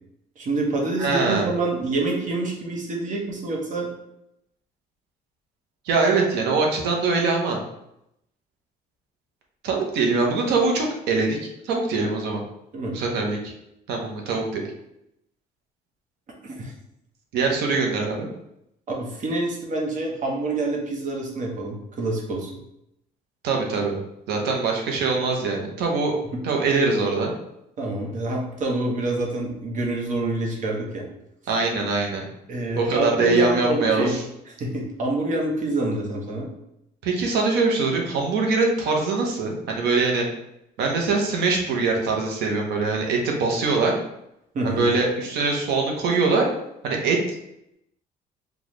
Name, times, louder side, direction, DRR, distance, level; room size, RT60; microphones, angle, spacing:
voice 1, 0.4-3.9 12.7-13.0 16.6-16.7 19.0-22.5 26.3-26.4 27.8-31.1 32.5-34.1 34.6-36.5 44.5-44.9, right 2 dB, 50° right, -1 dB, 1.0 m, -27 dB
voice 2, 1.0-1.5 5.9-7.6 9.6-11.4 11.6-12.4 12.9-13.5 13.9-14.6 17.3-18.3 23.4-24.0 24.3-26.1 26.4-27.3 31.5-32.2 32.8-34.2 37.0-40.2 40.8-43.9 44.6-46.5 46.8-47.2, right 4 dB, 80° right, 1 dB, 0.8 m, -23 dB
4.0 x 2.4 x 3.1 m, 0.82 s
cardioid pair, 110°, 17 cm